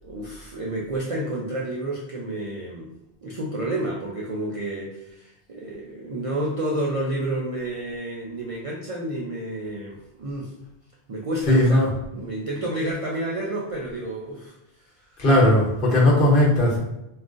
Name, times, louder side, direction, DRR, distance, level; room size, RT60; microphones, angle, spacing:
voice 1, 0.0-2.9 3.2-10.5 11.1-14.6 15.0-15.2, right 1 dB, 55° right, -3 dB, 0.4 m, -30 dB
voice 2, 11.5-11.9 15.2-16.8, left 1 dB, 60° left, -5 dB, 1.1 m, -17 dB
3.6 x 2.4 x 2.4 m, 0.91 s
omnidirectional pair, 1.1 m